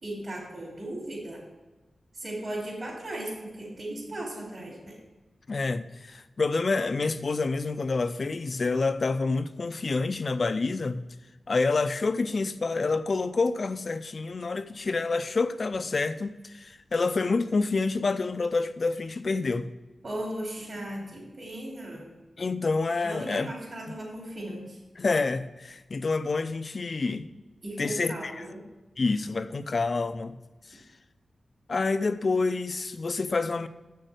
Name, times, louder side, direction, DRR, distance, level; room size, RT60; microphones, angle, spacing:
voice 1, 0.0-1.4 2.1-5.0 20.0-22.0 23.0-24.8 27.6-28.6, right 1 dB, 55° right, 3.7 m, -37 dB
voice 2, 5.5-11.1 11.5-19.7 22.4-23.5 25.0-27.3 27.8-28.5 29.0-30.4 30.7-30.8 31.7-33.7, left 3 dB, 50° left, 0.6 m, -28 dB
7.4 x 6.6 x 7.9 m
wide cardioid pair, 120°, 0 cm